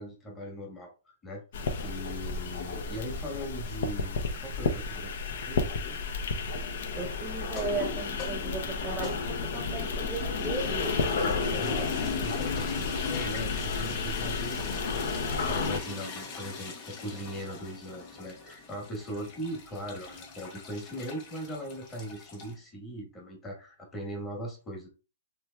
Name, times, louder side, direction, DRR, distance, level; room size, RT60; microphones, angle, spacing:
voice 1, 0.0-1.4 1.8-5.1 5.4-6.0 11.2-15.1 15.5-24.9, equal, 15° left, 1.3 m, -40 dB
sound 1, 1.5-15.8, left 4 dB, 60° left, 0.6 m, -32 dB
voice 2, 7.0-11.2, right 3 dB, 15° right, 0.5 m, -36 dB
sound 2, 7.4-22.5, left 5 dB, 40° left, 1.1 m, -41 dB
3.2 x 3.1 x 2.2 m
hypercardioid pair, 140°, 0 cm